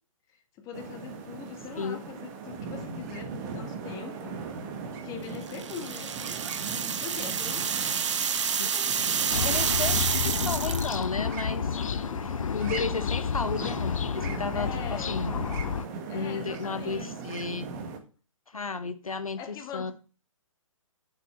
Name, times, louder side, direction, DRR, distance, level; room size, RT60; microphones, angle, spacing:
voice 1, 0.3-4.7 5.0-6.4 7.0-7.7 8.6-9.6 14.5-15.3 16.1-17.1 19.4-19.9, left 7 dB, 20° left, 4 dB, 1.7 m, -42 dB
sound 1, 0.7-18.0, right 5 dB, 30° right, 1.8 m, -39 dB
sound 2, 5.5-11.0, right 7 dB, 60° right, 1.1 m, -29 dB
voice 2, 9.3-11.8 12.2-15.3 16.1-17.7 18.5-19.9, left 4 dB, 90° left, 10 dB, 1.1 m, -34 dB
sound 3, 9.3-15.9, left 7 dB, 70° left, 0.5 m, -30 dB
7.3 x 7.2 x 5.8 m, 0.37 s
figure-of-eight pair, 140°, 17 cm